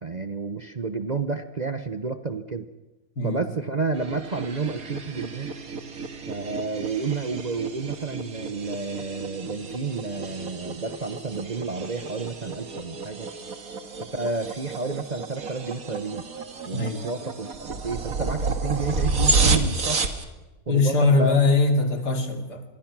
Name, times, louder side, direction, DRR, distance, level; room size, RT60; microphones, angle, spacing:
voice 1, 0.0-2.7 3.2-5.5 6.3-13.3 14.0-16.3 16.7-20.0 20.7-21.4, right 4 dB, 35° right, 8 dB, 0.8 m, -30 dB
voice 2, 3.2-3.5 16.7-17.1 20.7-22.6, left 3 dB, 75° left, 4 dB, 3.3 m, -21 dB
sound 1, 3.9-20.2, right 3 dB, 60° right, 2.2 m, -30 dB
25.5 x 23.0 x 6.1 m, 1.1 s
omnidirectional pair, 1.7 m